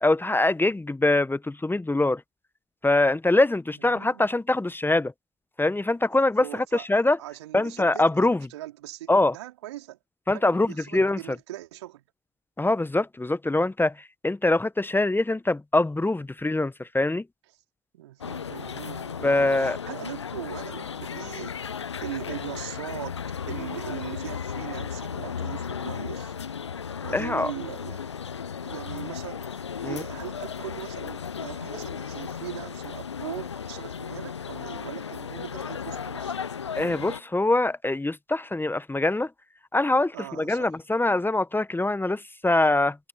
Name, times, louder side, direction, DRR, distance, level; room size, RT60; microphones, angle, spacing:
voice 1, 0.0-2.2 2.8-5.1 5.6-6.4 6.7-7.2 7.5-8.4 9.1-9.3 10.3-11.2 12.6-13.9 14.2-17.2 19.2-19.8 27.1-27.5 29.8-30.0 36.8-39.3 39.7-43.0, left 2 dB, 15° left, 1.3 m, -23 dB
voice 2, 3.8-4.3 6.4-6.9 7.2-10.0 10.3-12.0 17.9-23.2 23.5-26.3 27.0-28.1 28.6-36.4 40.1-40.8, right 15 dB, 75° right, 4.6 m, -40 dB
sound 1, 18.2-37.2, left 7 dB, 85° left, 0.7 m, -35 dB
figure-of-eight pair, 45°, 14 cm